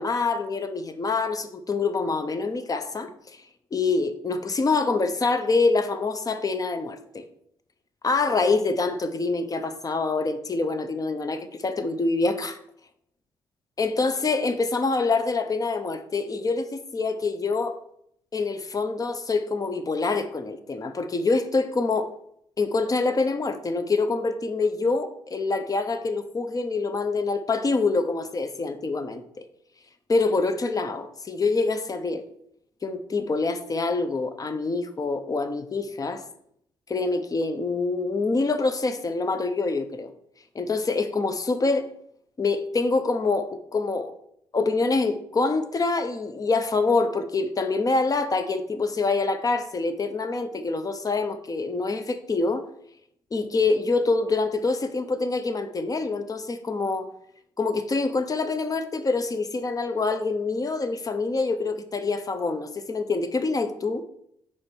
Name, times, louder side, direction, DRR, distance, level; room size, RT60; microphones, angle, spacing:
voice 1, 0.0-3.4 3.7-7.2 8.0-12.6 13.8-17.8 18.3-22.1 22.6-29.2 30.1-32.2 32.8-36.2 36.9-40.1 40.5-41.9 42.4-44.1 44.5-52.7 53.3-57.1 57.6-64.0, left 3 dB, 35° left, 0.7 m, -25 dB
4.9 x 4.3 x 4.5 m
supercardioid pair, 60°, 10 cm